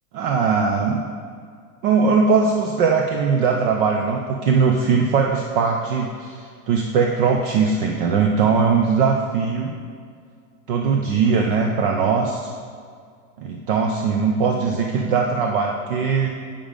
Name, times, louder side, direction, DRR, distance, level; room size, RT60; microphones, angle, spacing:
voice 1, 0.1-1.0 1.8-9.7 10.7-12.5 13.4-16.3, right 5 dB, 35° right, 2 dB, 0.5 m, -20 dB
9.1 x 5.1 x 5.1 m, 2.1 s
supercardioid pair, 150°, 49 cm